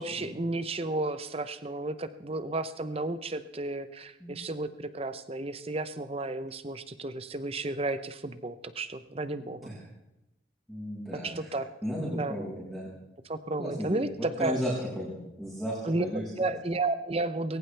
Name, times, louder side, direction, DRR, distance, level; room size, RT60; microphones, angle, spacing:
voice 1, 0.0-9.7 11.2-11.7 12.2-12.3 13.2-14.6 15.8-17.6, right 2 dB, 30° right, 11 dB, 0.8 m, -33 dB
voice 2, 9.4-9.8 10.7-11.5 11.8-12.9 13.6-16.5, equal, ahead, -9 dB, 5.7 m, -35 dB
21.0 x 18.5 x 3.5 m, 0.90 s
head